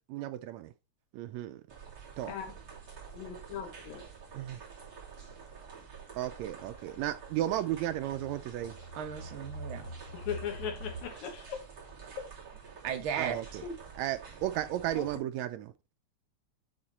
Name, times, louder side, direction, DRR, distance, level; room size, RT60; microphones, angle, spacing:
voice 1, 0.1-0.7 1.1-1.6 2.2-2.3 4.3-4.6 6.1-8.8 13.2-13.4 14.0-15.7, right 13 dB, 80° right, 1.7 m, -34 dB
sound 1, 1.7-15.2, right 6 dB, 35° right, 3.2 m, -49 dB
voice 2, 3.1-4.0 10.1-11.6 13.2-13.3 13.6-13.7 15.0-15.1, left 8 dB, 75° left, 2.8 m, -38 dB
sound 2, 3.9-4.0 4.9-11.0, right 1 dB, 40° left, 2.3 m, -47 dB
voice 3, 8.9-9.9 12.0-12.1 12.8-13.4, right 8 dB, 55° right, 1.7 m, -36 dB
8.9 x 3.7 x 4.3 m
omnidirectional pair, 3.5 m